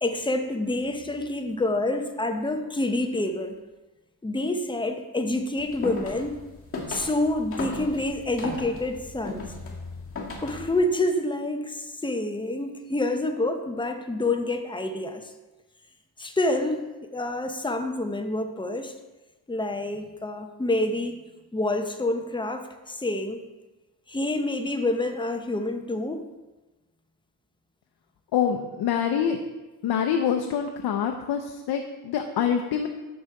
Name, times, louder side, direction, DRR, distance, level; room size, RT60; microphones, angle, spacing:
voice 1, 0.0-3.6 4.2-6.4 6.9-9.4 10.4-15.3 16.2-18.9 19.5-21.2 21.5-23.4 24.1-26.2, left 2 dB, 15° left, 6 dB, 0.7 m, -27 dB
sound 1, 5.6-10.8, left 3 dB, 35° left, 1.9 m, -36 dB
voice 2, 28.3-29.4 29.8-32.9, left 8 dB, 85° left, 4 dB, 0.6 m, -25 dB
6.4 x 6.2 x 4.6 m, 1.1 s
cardioid pair, 95°, 38 cm